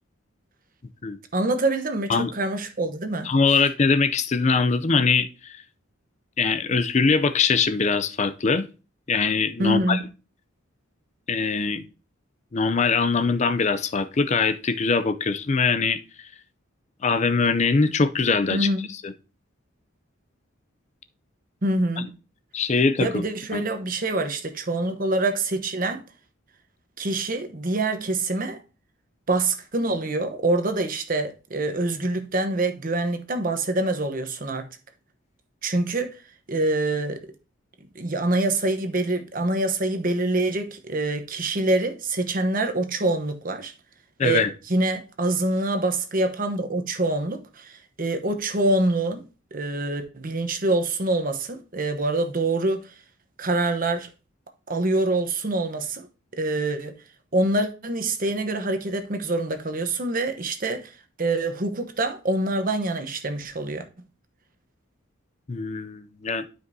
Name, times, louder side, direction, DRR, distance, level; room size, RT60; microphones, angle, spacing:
voice 1, 1.3-3.3 9.6-10.0 18.5-18.9 21.6-22.1 23.0-26.0 27.0-28.6 29.3-34.7 35.6-36.2 36.5-37.2 37.9-43.7 44.2-49.2 49.5-52.9 53.4-54.1 54.7-56.1 56.3-57.0 57.3-60.9 61.2-63.9, right 2 dB, 40° right, 1.0 m, -25 dB
voice 2, 3.2-5.6 6.4-8.6 9.1-10.0 11.3-11.8 12.5-16.3 17.0-18.7 19.0-19.1 22.0-22.1 22.5-23.2 23.5-23.6 44.2-44.5 65.5-66.4, left 4 dB, 35° left, 0.5 m, -22 dB
12.0 x 5.2 x 2.7 m
head